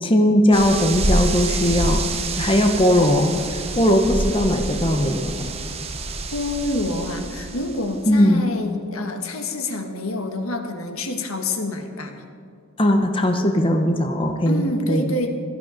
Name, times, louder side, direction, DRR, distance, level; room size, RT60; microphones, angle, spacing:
voice 1, 0.0-2.0 2.4-5.5 8.1-8.4 12.8-15.1, left 1 dB, 25° left, 4 dB, 1.0 m, -19 dB
sound 1, 0.5-8.0, right 2 dB, 30° right, 0.9 m, -27 dB
voice 2, 6.3-12.2 14.5-15.3, left 1 dB, 85° left, 5 dB, 1.6 m, -27 dB
16.5 x 14.0 x 5.2 m, 2.3 s
head